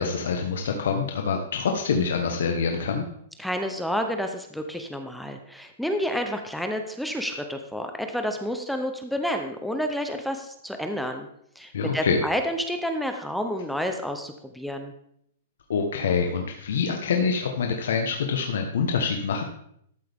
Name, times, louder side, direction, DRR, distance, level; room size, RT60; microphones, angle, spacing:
voice 1, 0.0-3.0 11.7-12.2 15.7-19.4, left 5 dB, 75° left, 3 dB, 1.2 m, -25 dB
voice 2, 3.4-11.3 11.6-14.9, equal, ahead, 5 dB, 0.7 m, -30 dB
13.0 x 8.2 x 3.5 m, 0.71 s
hypercardioid pair, 160°, 0 cm